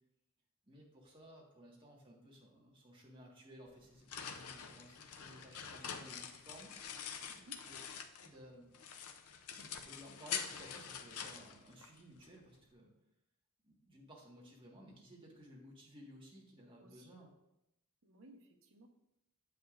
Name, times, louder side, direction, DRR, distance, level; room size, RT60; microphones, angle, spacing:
voice 1, 0.7-6.7 7.7-7.8 8.2-8.7 9.6-12.9 13.6-17.3, equal, 25° right, -3 dB, 1.6 m, -57 dB
sound 1, 3.7-8.4 8.7-12.3, left 7 dB, 90° left, 0.6 m, -46 dB
voice 2, 7.3-7.6 16.8-17.2 18.0-18.9, right 1 dB, 70° right, 2 dB, 1.1 m, -60 dB
9.4 x 7.6 x 2.5 m, 0.85 s
head